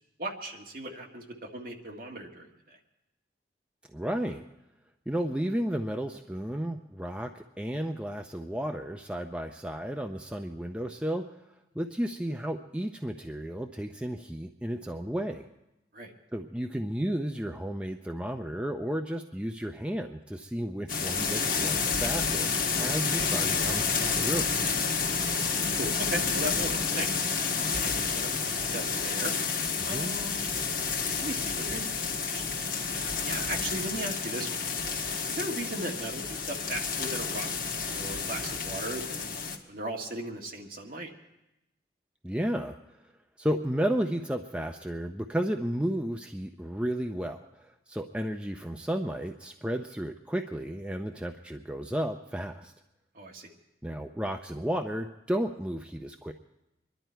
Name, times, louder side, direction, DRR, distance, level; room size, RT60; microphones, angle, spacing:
voice 1, 0.2-2.5 15.9-16.1 25.2-27.1 27.8-29.3 29.9-30.4 31.2-34.6 35.3-37.5 37.8-39.4 39.7-41.1 53.2-53.5, right 1 dB, 55° right, 0 dB, 1.8 m, -37 dB
voice 2, 3.9-4.5 5.1-11.2 11.7-15.4 16.3-24.5 29.8-30.1 42.2-43.0 43.4-52.7 53.8-56.3, equal, 5° right, 4 dB, 0.5 m, -33 dB
sound 1, 20.9-39.6, left 5 dB, 50° left, 1.4 m, -30 dB
24.5 x 11.5 x 4.5 m, 0.93 s
head